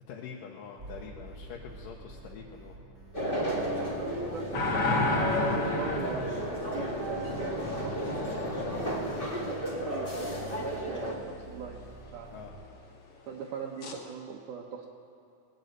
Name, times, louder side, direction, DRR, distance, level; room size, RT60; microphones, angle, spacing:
voice 1, 0.1-2.8 12.3-12.5, left 6 dB, 85° left, -1 dB, 2.6 m, -45 dB
sound 1, 0.8-12.7, right 2 dB, 25° right, 1.4 m, -49 dB
Café Atmo loop, 3.1-11.1, equal, 25° left, 1.3 m, -33 dB
voice 2, 4.0-10.3 10.6-11.8 12.1-12.3 13.3-14.9, right 7 dB, 75° right, -1 dB, 2.2 m, -41 dB
sound 2, 4.5-10.4 13.8-14.0, left 2 dB, 50° left, 2.5 m, -33 dB
19.5 x 6.8 x 9.1 m, 2.7 s
omnidirectional pair, 3.8 m